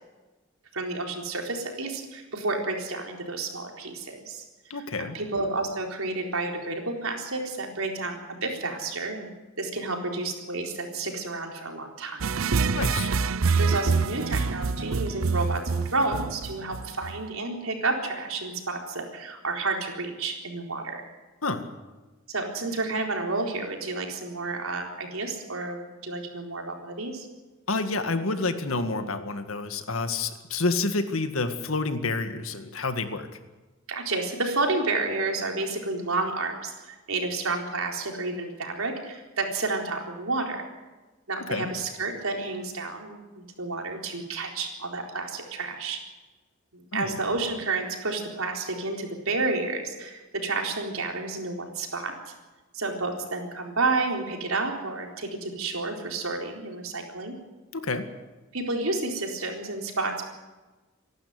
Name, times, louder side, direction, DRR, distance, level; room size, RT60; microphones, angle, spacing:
voice 1, 0.7-4.4 4.7-12.2 12.9-13.2 13.6-21.0 22.3-27.3 33.9-40.6 41.3-46.0 46.7-52.1 52.7-57.3 58.5-60.2, right 3 dB, 90° right, 2 dB, 4.1 m, -30 dB
voice 2, 4.7-5.2 12.7-13.1 21.4-21.7 27.7-33.3 41.5-41.7 46.9-47.1 57.7-58.1, left 3 dB, 80° left, 8 dB, 1.9 m, -29 dB
sound 1, 12.2-17.2, right 4 dB, 75° right, 0.7 m, -26 dB
25.5 x 12.0 x 9.6 m, 1.2 s
head